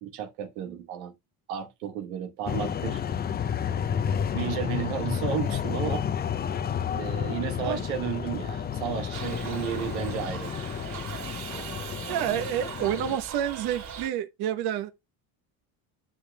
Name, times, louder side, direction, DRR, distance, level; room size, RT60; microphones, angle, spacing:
voice 1, 0.0-1.1 1.5-3.0 4.3-6.0 6.9-10.5 11.5-11.8, right 8 dB, 90° right, 1.3 m, -33 dB
sound 1, 2.5-13.2, left 8 dB, 25° left, 0.5 m, -31 dB
Shout / Livestock farm animals working animals, 9.1-14.1, right 7 dB, 45° right, 3.1 m, -40 dB
voice 2, 12.1-14.9, right 10 dB, 65° right, 1.1 m, -29 dB
9.7 x 6.3 x 2.2 m
supercardioid pair, 90°, 41 cm